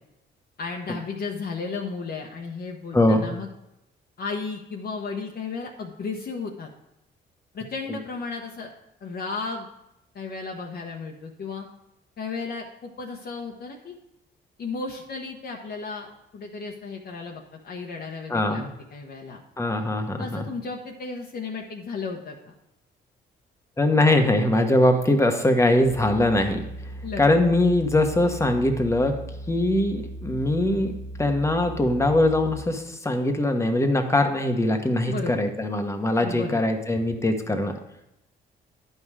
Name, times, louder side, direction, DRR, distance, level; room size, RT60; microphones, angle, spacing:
voice 1, 0.6-3.5 4.2-6.7 7.5-8.7 9.0-9.7 10.1-11.7 12.2-14.0 14.6-18.6 18.9-19.4 20.2-22.4 27.0-27.5 35.1-35.5 36.2-36.6, left 4 dB, 50° left, 0 dB, 1.0 m, -34 dB
voice 2, 2.9-3.2 7.9-8.0 18.3-18.7 19.6-20.5 23.8-26.6 27.2-29.2 29.5-37.8, left 1 dB, 15° left, 5 dB, 1.2 m, -22 dB
sound 1, 25.8-32.6, right 1 dB, 75° right, 1.0 m, -38 dB
10.5 x 5.6 x 4.9 m, 0.87 s
cardioid pair, 90°, 20 cm